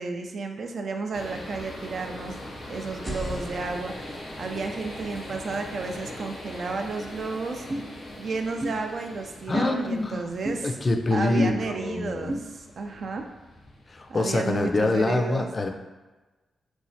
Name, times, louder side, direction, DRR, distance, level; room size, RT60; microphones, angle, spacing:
voice 1, 0.0-2.4 2.7-7.7 8.2-10.8 11.1-13.3 14.1-15.5, right 4 dB, 65° right, 4 dB, 0.3 m, -32 dB
sound 1, 1.1-15.0, left 1 dB, 85° left, 0.7 m, -42 dB
sound 2, 2.9-6.7, left 1 dB, 10° right, 0.6 m, -41 dB
sound 3, 7.7-7.8 8.6-8.8 9.5-9.7 10.4-10.6 11.4-11.5 12.3-12.4, right 1 dB, 45° right, 0.7 m, -29 dB
voice 2, 9.5-10.2 10.6-12.3 13.9-15.7, left 2 dB, 45° left, 4 dB, 0.3 m, -25 dB
3.0 x 2.2 x 2.7 m, 1.2 s
supercardioid pair, 45°, 0 cm